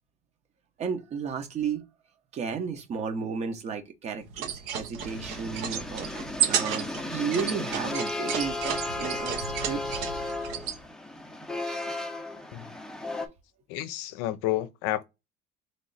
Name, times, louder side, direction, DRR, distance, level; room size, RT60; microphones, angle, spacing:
voice 1, 0.8-1.8 2.3-9.8, right 6 dB, 40° right, 0.9 m, -33 dB
sound 1, 4.3-10.8, right 9 dB, 70° right, 0.9 m, -32 dB
sound 2, 5.0-13.3, left 2 dB, 5° left, 0.6 m, -35 dB
voice 2, 13.7-15.0, left 14 dB, 80° left, 0.5 m, -30 dB
3.3 x 3.0 x 3.9 m
cardioid pair, 135°, 18 cm